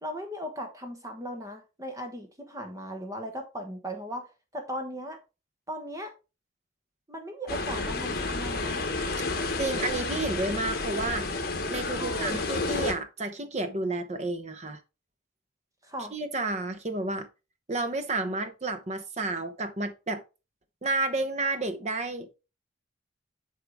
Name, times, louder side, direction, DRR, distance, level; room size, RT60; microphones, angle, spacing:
voice 1, 0.0-4.3 4.5-5.2 5.7-6.1 7.1-8.9 12.0-12.4 15.8-16.1, equal, 15° right, 1.2 m, -37 dB
sound 1, 7.5-12.9, left 3 dB, 50° left, 1.5 m, -30 dB
voice 2, 9.6-11.3 11.7-14.8 16.1-17.3 17.7-20.2 20.8-22.3, right 2 dB, 35° right, 0.9 m, -31 dB
8.1 x 4.9 x 3.6 m
head